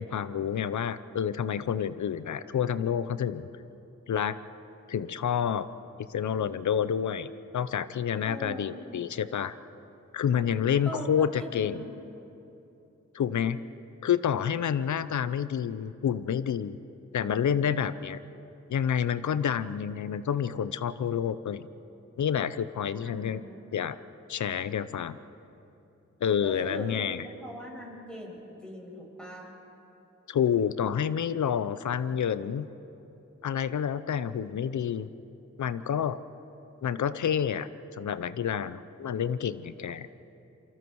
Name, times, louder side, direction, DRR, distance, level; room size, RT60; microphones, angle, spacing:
voice 1, 0.0-3.4 4.1-4.4 4.9-5.7 6.1-7.3 7.5-9.6 10.1-11.8 13.1-13.6 14.0-16.8 17.1-18.2 18.7-21.7 22.2-23.4 23.7-24.0 24.3-25.2 26.2-27.3 30.3-32.7 33.4-35.1 35.6-36.2 36.8-40.1, left 8 dB, 80° left, 14 dB, 0.8 m, -28 dB
voice 2, 8.2-8.8 10.9-11.9 23.0-23.8 26.4-27.0 27.4-29.5, equal, 5° left, -2 dB, 7.1 m, -41 dB
28.0 x 24.0 x 4.7 m, 2.9 s
cardioid pair, 55°, 29 cm